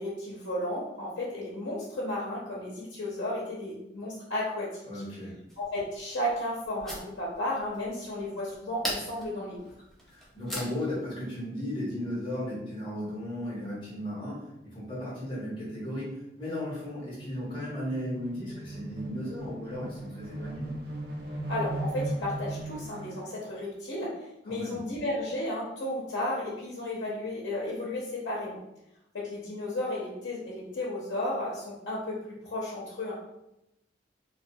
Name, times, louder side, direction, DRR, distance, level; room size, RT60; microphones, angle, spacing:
voice 1, 0.0-5.0 5.6-9.7 21.5-28.6 29.1-33.1, left 1 dB, 85° left, -6 dB, 0.6 m, -33 dB
voice 2, 4.9-5.4 10.1-20.7 24.4-24.8, left 1 dB, 25° left, -7 dB, 1.0 m, -35 dB
sound 1, 5.5-11.0, equal, ahead, 0.3 m, -41 dB
sound 2, 14.0-23.4, right 1 dB, 55° right, 0.5 m, -39 dB
2.3 x 2.2 x 2.6 m, 0.85 s
head